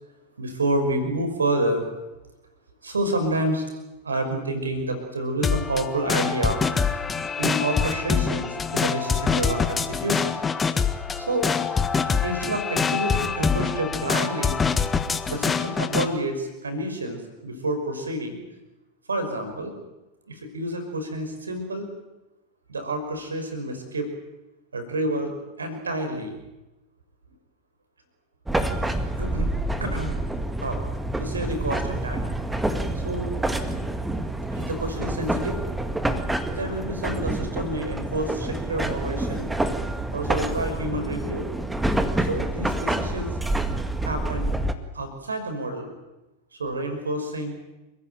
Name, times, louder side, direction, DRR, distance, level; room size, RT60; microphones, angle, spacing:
voice 1, 0.4-1.9 2.8-3.7 4.0-6.6 7.4-10.4 11.2-11.5 12.2-14.6 15.3-18.4 19.1-19.8 20.3-21.9 22.7-24.1 24.7-26.3 28.8-29.5 29.8-30.2 30.6-30.8 31.2-32.2 32.9-33.3 34.5-35.6 36.5-39.5 40.1-41.5 42.2-43.4 44.0-44.6 44.9-45.9 46.5-47.6, right 1 dB, 75° right, 7 dB, 5.7 m, -29 dB
sound 1, 5.4-16.1, left 5 dB, 15° left, 1.7 m, -25 dB
sound 2, 28.5-44.7, right 1 dB, 5° right, 2.0 m, -27 dB
29.0 x 15.5 x 9.2 m, 1.0 s
figure-of-eight pair, 90°, 0 cm